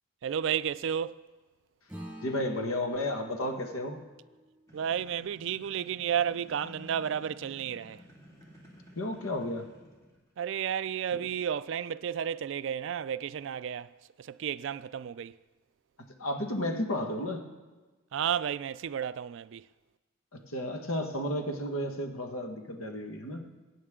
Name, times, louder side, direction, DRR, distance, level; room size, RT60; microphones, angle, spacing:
voice 1, 0.2-1.2 4.7-8.0 10.4-13.9 14.2-15.3 18.1-19.6, right 8 dB, 60° right, 0.3 m, -32 dB
Acoustic guitar / Strum, 1.9-6.7, right 1 dB, 5° right, 5.0 m, -50 dB
voice 2, 2.2-4.0 8.9-9.7 11.1-11.2 16.2-17.4 20.3-23.4, left 1 dB, 80° left, 1.5 m, -33 dB
sound 1, 4.7-10.3, equal, 15° left, 2.3 m, -53 dB
22.0 x 8.8 x 3.7 m
head